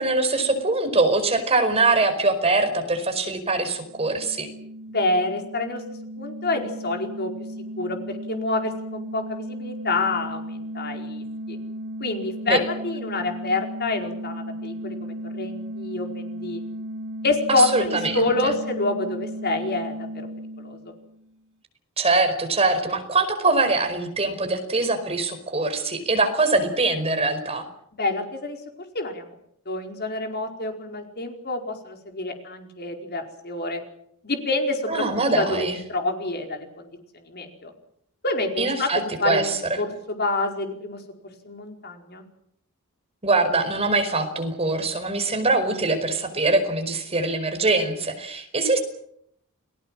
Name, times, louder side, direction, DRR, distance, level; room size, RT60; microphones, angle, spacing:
voice 1, 0.0-4.5 12.5-12.6 17.5-18.5 22.0-27.7 34.9-35.8 38.6-39.8 43.2-48.8, right 3 dB, 25° right, 6 dB, 4.9 m, -23 dB
sound 1, 3.8-21.3, equal, 75° right, 2.2 m, -35 dB
voice 2, 4.9-5.8 6.2-7.3 7.8-11.6 12.0-16.6 17.2-20.3 20.6-20.9 27.9-28.6 28.9-29.3 29.7-33.8 34.2-36.9 37.1-37.7 38.2-42.3, left 2 dB, 45° left, 4 dB, 4.8 m, -27 dB
30.0 x 19.5 x 7.6 m, 0.71 s
head